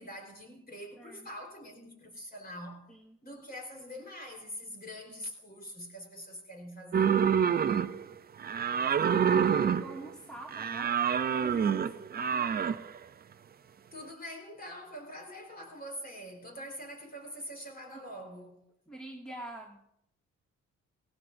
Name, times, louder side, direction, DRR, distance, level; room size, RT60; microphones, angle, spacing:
voice 1, 0.0-2.9 3.2-7.2 13.9-18.7, equal, 30° left, 4.0 m, -44 dB
voice 2, 1.0-1.3 2.9-3.2 7.4-8.2 9.0-11.0 11.3-12.8 17.9-18.1 18.9-19.8, right 2 dB, 5° left, 2.1 m, -46 dB
sound 1, 6.9-8.1 8.4-10.1 10.5-12.9, right 7 dB, 30° right, 0.5 m, -27 dB
19.0 x 16.5 x 2.6 m
cardioid pair, 90°, 30 cm